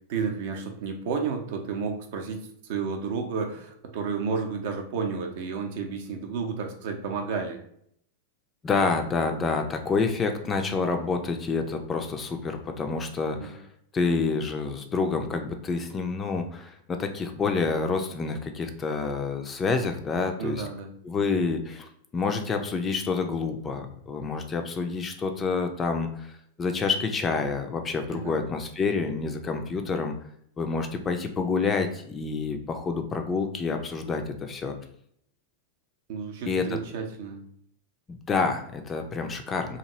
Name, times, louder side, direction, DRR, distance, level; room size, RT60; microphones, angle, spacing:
voice 1, 0.1-7.6 13.3-13.6 20.4-20.9 28.1-28.4 36.1-37.4, right 5 dB, 50° right, 4 dB, 0.5 m, -31 dB
voice 2, 8.6-13.7 13.9-20.7 21.0-30.1 30.6-34.7 36.5-36.8 38.1-39.8, left 4 dB, 20° left, 5 dB, 0.3 m, -28 dB
2.9 x 2.5 x 2.8 m, 0.68 s
figure-of-eight pair, 90°, 0 cm